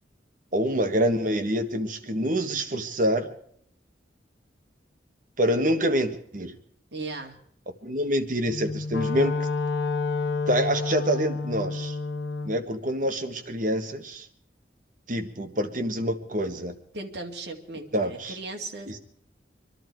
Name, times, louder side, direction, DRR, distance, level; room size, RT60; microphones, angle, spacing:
voice 1, 0.5-3.3 5.4-6.5 7.8-9.3 10.5-11.9 12.4-14.2 15.1-16.7 17.9-18.3, equal, 45° right, 7 dB, 1.4 m, -26 dB
voice 2, 6.9-7.4 16.9-19.0, right 3 dB, 65° right, 2 dB, 2.2 m, -37 dB
Wind instrument woodwind instrument, 8.4-12.6, left 3 dB, 75° left, 1.1 m, -29 dB
25.0 x 11.5 x 4.6 m, 0.67 s
head